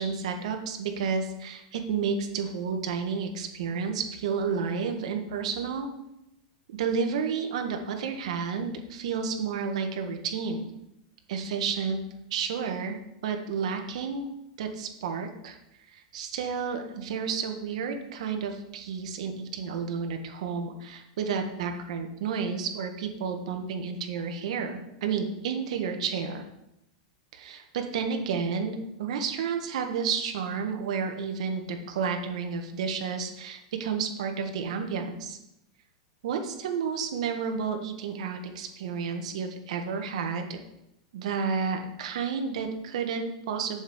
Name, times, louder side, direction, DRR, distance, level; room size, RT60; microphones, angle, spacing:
voice 1, 0.0-5.9 6.8-10.7 11.3-12.0 12.3-13.0 13.2-14.3 14.6-15.6 15.9-26.4 27.3-35.4 36.2-40.6 41.1-43.8, right 6 dB, 70° right, 5 dB, 1.5 m, -31 dB
7.2 x 5.4 x 7.1 m, 0.84 s
supercardioid pair, 150°, 4 cm